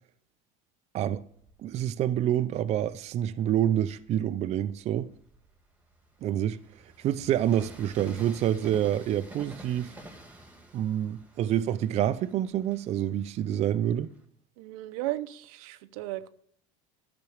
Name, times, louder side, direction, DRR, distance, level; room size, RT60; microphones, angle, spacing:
Train, 1.4-3.0 3.6-14.2, right 1 dB, 10° right, 1.6 m, -51 dB
voice 1, 1.6-5.1 6.2-6.6 7.0-9.9 10.7-14.1, right 11 dB, 40° right, 0.5 m, -27 dB
voice 2, 14.6-16.3, right 16 dB, 85° right, 0.8 m, -35 dB
12.0 x 6.1 x 8.6 m
cardioid pair, 140°, 17 cm